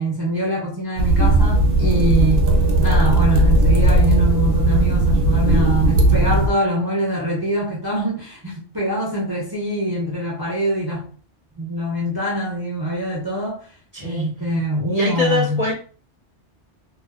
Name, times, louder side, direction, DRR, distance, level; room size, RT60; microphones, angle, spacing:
voice 1, 0.0-11.1 11.6-13.7 14.0-15.6, equal, 35° right, 0.4 m, -24 dB
sound 1, 1.0-6.5, right 2 dB, 60° right, 0.7 m, -16 dB
voice 2, 13.9-14.3 14.9-15.7, left 4 dB, 50° left, 0.5 m, -23 dB
2.4 x 2.3 x 2.4 m
omnidirectional pair, 1.2 m